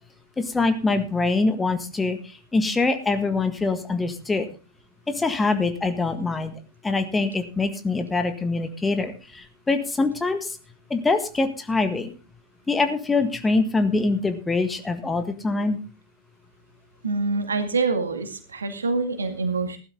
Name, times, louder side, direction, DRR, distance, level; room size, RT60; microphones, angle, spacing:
voice 1, 0.4-4.5 5.1-6.5 6.8-10.6 10.9-12.1 12.7-15.8, left 3 dB, 10° left, 8 dB, 1.6 m, -24 dB
voice 2, 17.0-19.8, right 3 dB, 75° right, 8 dB, 2.1 m, -25 dB
15.5 x 12.0 x 3.7 m, 0.32 s
figure-of-eight pair, 90°, 0 cm